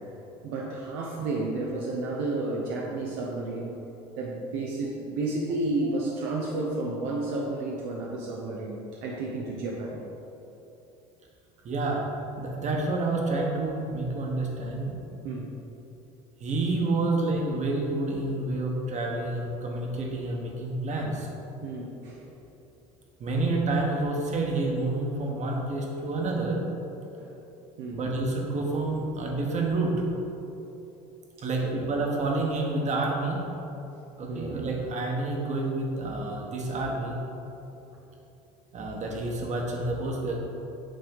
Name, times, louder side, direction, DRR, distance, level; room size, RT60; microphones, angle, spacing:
voice 1, 0.4-3.8 4.2-10.0 15.2-15.5 21.6-22.3 27.1-27.4 27.8-28.0 31.6-31.7 34.3-34.5 37.9-38.0, right 2 dB, 70° right, -2 dB, 0.9 m, -32 dB
voice 2, 11.6-12.0 12.4-15.2 16.4-21.3 23.2-26.6 27.9-30.0 31.4-33.4 34.2-37.2 38.7-40.4, right 2 dB, 40° right, 0 dB, 1.5 m, -29 dB
9.0 x 3.4 x 5.5 m, 3.0 s
hypercardioid pair, 85°, 18 cm